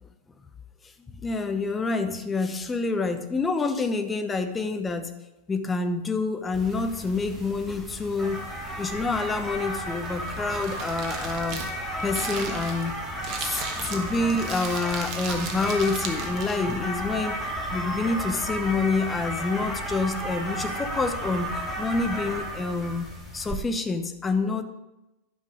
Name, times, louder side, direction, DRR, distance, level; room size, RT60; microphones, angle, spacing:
voice 1, 1.1-5.2 5.5-8.4 8.8-11.6 12.0-13.0 13.4-17.4 17.7-24.6, left 3 dB, 15° left, 7 dB, 0.7 m, -27 dB
sound 1, 6.5-23.5, equal, 5° right, 2.2 m, -33 dB
Crumpling crinkling, 9.9-16.7, right 5 dB, 40° right, 1.2 m, -37 dB
10.5 x 5.6 x 4.9 m, 1.0 s
figure-of-eight pair, 90°, 0 cm